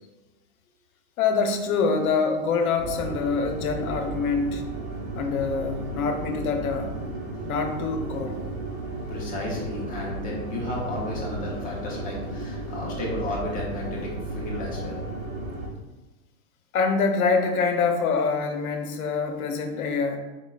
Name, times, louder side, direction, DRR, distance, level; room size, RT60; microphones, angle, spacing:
voice 1, 1.2-4.6 5.1-7.0 7.4-8.4 16.7-20.2, left 4 dB, 90° left, 5 dB, 0.8 m, -25 dB
sound 1, 2.8-15.7, right 2 dB, 50° right, 1.1 m, -34 dB
voice 2, 9.1-15.0, left 1 dB, 20° left, -3 dB, 0.9 m, -33 dB
4.8 x 3.7 x 2.4 m, 1.1 s
supercardioid pair, 145°, 42 cm